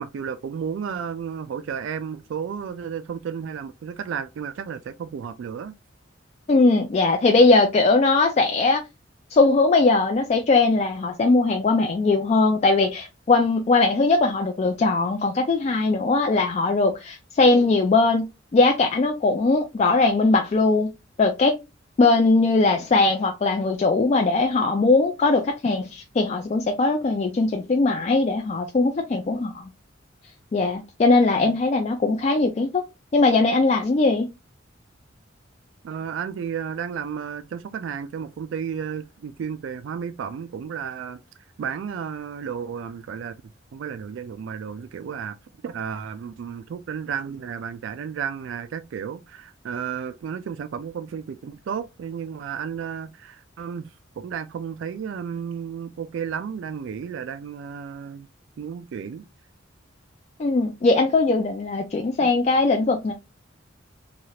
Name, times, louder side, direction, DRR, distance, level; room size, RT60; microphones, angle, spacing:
voice 1, 0.0-5.7 31.4-31.5 35.8-41.2 41.6-43.3 43.7-45.4 45.6-53.9 54.2-58.3 58.6-59.2 62.2-62.4, right 7 dB, 70° right, 0.3 m, -33 dB
voice 2, 6.5-8.8 9.3-20.9 21.2-21.6 22.0-29.6 30.5-32.8 33.1-34.3 60.4-63.1, left 3 dB, 35° left, 0.3 m, -20 dB
3.1 x 2.4 x 2.7 m
head